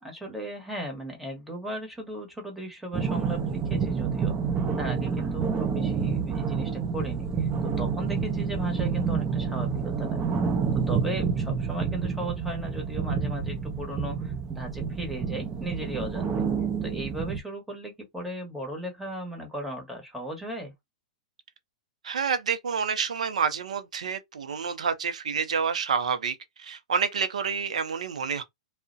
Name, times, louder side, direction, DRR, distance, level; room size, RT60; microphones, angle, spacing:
voice 1, 0.0-4.3 4.8-10.2 10.7-16.5 16.8-20.7, right 1 dB, 5° right, 1.0 m, -37 dB
sound 1, 2.9-17.4, right 6 dB, 25° right, 0.6 m, -28 dB
voice 2, 22.0-28.4, right 6 dB, 85° right, 0.5 m, -28 dB
2.3 x 2.0 x 2.6 m
hypercardioid pair, 125°, 4 cm